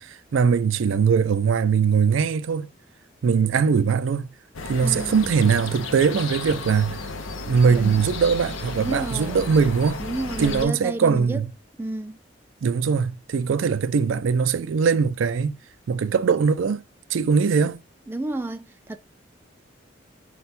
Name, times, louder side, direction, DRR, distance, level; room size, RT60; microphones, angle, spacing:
voice 1, 0.0-2.7 3.2-4.3 4.7-7.0 7.5-10.0 10.4-11.5 12.6-15.6 15.9-16.8 17.1-17.8, right 6 dB, 85° right, 0.4 m, -21 dB
sound 1, 4.5-10.6, left 3 dB, 90° left, 0.6 m, -33 dB
voice 2, 4.8-5.3 7.7-8.0 8.8-9.4 10.0-11.4 11.8-12.2 18.1-19.0, right 1 dB, 10° right, 0.3 m, -31 dB
4.4 x 2.2 x 4.1 m
head